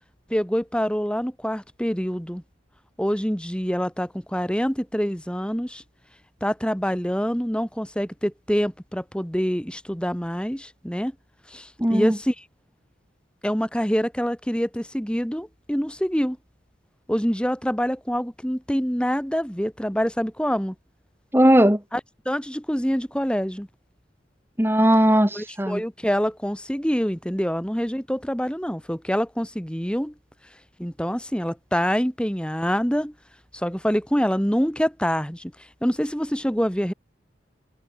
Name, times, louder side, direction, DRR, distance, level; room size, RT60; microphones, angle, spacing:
voice 1, 0.3-2.4 3.0-5.8 6.4-11.1 11.5-12.4 13.4-16.4 17.1-20.7 21.9-23.7 25.3-30.1 30.8-33.1 33.5-36.9, equal, 5° left, 2.8 m, -26 dB
voice 2, 11.8-12.1 21.3-21.8 24.6-25.8, equal, 10° right, 2.1 m, -18 dB
head